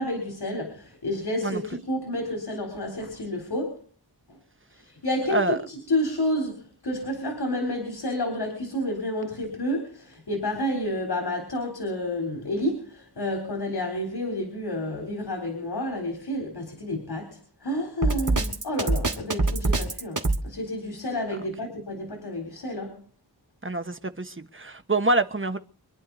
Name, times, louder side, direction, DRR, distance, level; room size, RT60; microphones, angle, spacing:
voice 1, 0.0-3.8 4.9-23.0, left 1 dB, 85° left, 3.9 m, -30 dB
Drum kit, 18.0-20.4, right 2 dB, 50° right, 2.4 m, -23 dB
voice 2, 23.6-25.6, right 2 dB, 30° right, 1.2 m, -26 dB
25.5 x 11.0 x 4.1 m
wide cardioid pair, 75°, 38 cm